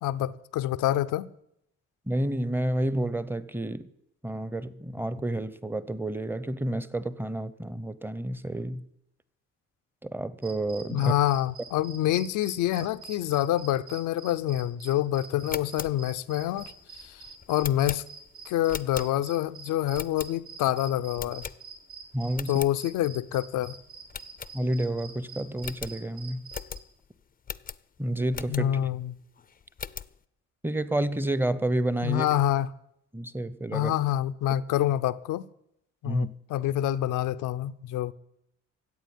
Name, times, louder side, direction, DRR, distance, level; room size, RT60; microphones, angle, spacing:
voice 1, 0.0-1.3 10.9-16.7 17.0-18.0 18.5-21.4 22.5-23.8 28.5-29.1 32.0-32.7 33.7-35.4 36.0-38.1, left 12 dB, 85° left, 0.7 m, -27 dB
voice 2, 2.1-3.9 4.2-8.8 10.0-11.1 22.1-22.6 24.5-26.4 28.0-28.8 30.6-32.3 33.1-33.9 36.0-36.3, right 1 dB, 5° right, 0.8 m, -30 dB
sound 1, 10.4-26.8, right 5 dB, 75° right, 3.9 m, -47 dB
sound 2, 15.3-19.5 19.9-20.7 21.2-22.0 22.3-22.8 23.2-23.3 23.5-23.7 24.1-25.0 25.3-25.4 25.6-28.9 29.4-30.2, left 7 dB, 30° left, 0.5 m, -40 dB
14.5 x 8.2 x 9.3 m
cardioid pair, 90°, 30 cm